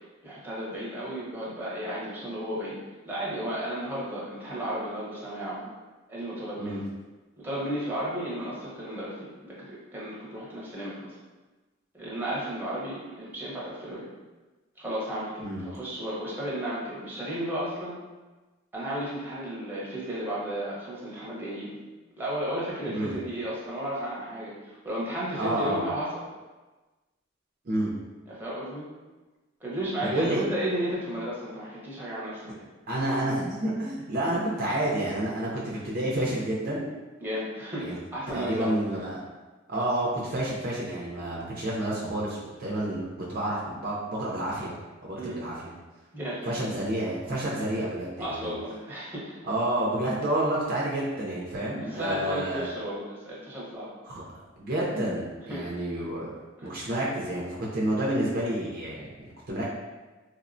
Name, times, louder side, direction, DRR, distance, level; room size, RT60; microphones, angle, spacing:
voice 1, 0.2-2.7 3.0-5.7 6.1-6.8 7.4-11.1 12.0-14.1 14.8-18.0 18.7-21.8 22.2-26.2 28.3-28.9 29.6-32.7 37.2-38.8 45.2-45.5 46.1-46.5 48.2-49.4 51.8-53.9 55.5-55.7 56.6-56.7, right 1 dB, 10° right, -8 dB, 0.7 m, -33 dB
voice 2, 25.4-25.8 27.7-27.9 30.1-30.4 32.9-36.9 37.8-38.0 38.3-39.2 39.7-43.0 43.3-44.7 45.0-45.7 46.5-48.5 49.4-52.7 54.1-54.2 54.6-56.3 56.6-59.6, right 1 dB, 45° right, -5 dB, 0.5 m, -29 dB
3.3 x 2.1 x 2.5 m, 1.2 s
head